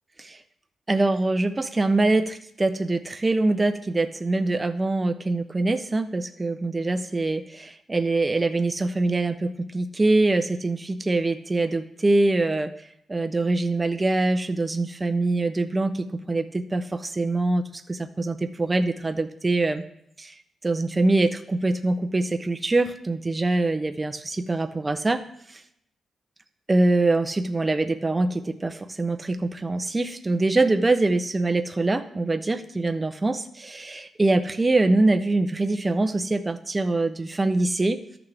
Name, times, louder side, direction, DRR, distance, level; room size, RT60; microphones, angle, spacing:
voice 1, 0.9-12.7 13.1-19.8 20.2-20.3 20.6-25.2 25.5-25.6 26.7-38.0, right 2 dB, 15° right, 8 dB, 0.4 m, -24 dB
13.0 x 5.9 x 3.3 m, 0.73 s
wide cardioid pair, 155°, 0 cm